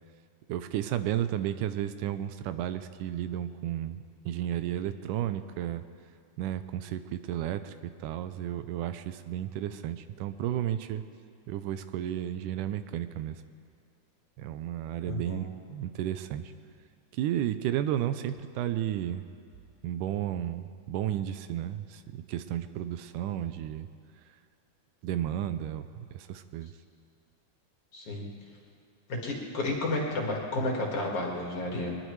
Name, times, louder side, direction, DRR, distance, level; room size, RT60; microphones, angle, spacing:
voice 1, 0.5-5.8 6.4-11.0 11.5-13.4 14.4-16.5 17.1-19.2 19.8-23.9 25.0-26.7, right 11 dB, 85° right, 11 dB, 2.1 m, -33 dB
voice 2, 15.0-15.4 27.9-28.3 29.1-31.9, left 2 dB, 50° left, -2 dB, 2.8 m, -31 dB
22.0 x 20.0 x 3.2 m, 2.3 s
omnidirectional pair, 3.6 m